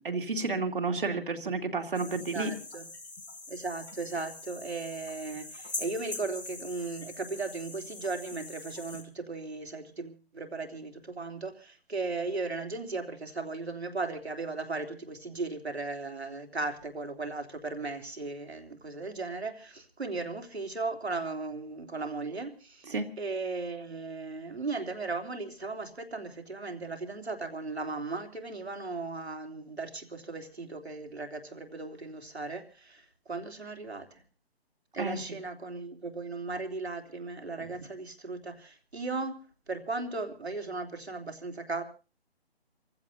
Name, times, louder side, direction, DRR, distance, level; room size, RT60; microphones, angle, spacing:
voice 1, 0.0-2.5 22.9-23.1 35.0-35.2, right 3 dB, 50° right, 2.5 m, -31 dB
sound 1, 1.9-9.0, left 2 dB, 85° left, 4.1 m, -43 dB
voice 2, 2.3-2.9 3.5-22.9 23.2-34.2 34.9-39.4 39.7-41.8, right 3 dB, 75° right, 3.2 m, -37 dB
29.5 x 15.5 x 2.6 m
figure-of-eight pair, 150°, 33 cm